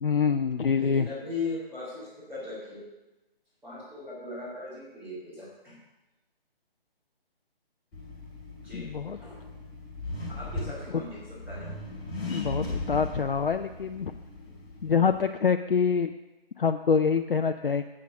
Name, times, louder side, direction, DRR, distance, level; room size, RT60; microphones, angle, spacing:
voice 1, 0.0-1.1 8.7-9.2 10.9-11.0 12.3-14.1 14.8-16.1 16.6-17.8, left 6 dB, 65° left, 7 dB, 0.6 m, -25 dB
voice 2, 0.8-2.8 3.6-5.8 8.6-9.4 10.3-11.7, left 3 dB, 5° right, -13 dB, 2.4 m, -38 dB
Accelerating revving vroom, 7.9-15.3, left 2 dB, 15° left, 2.5 m, -38 dB
8.6 x 8.4 x 6.2 m, 1.1 s
figure-of-eight pair, 150°, 30 cm